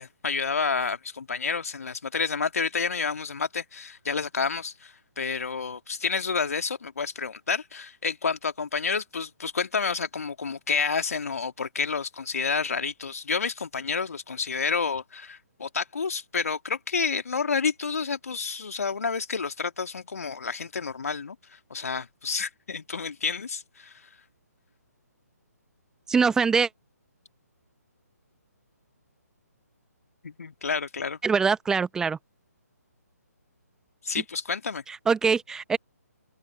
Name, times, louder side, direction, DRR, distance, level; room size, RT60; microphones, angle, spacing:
voice 1, 0.0-21.4 21.7-23.9 30.2-31.2 34.0-34.8, left 5 dB, 60° left, 2.3 m, -29 dB
voice 2, 26.1-26.7 31.2-32.2 34.9-35.8, right 5 dB, 5° right, 0.9 m, -23 dB
figure-of-eight pair, 135°, 9 cm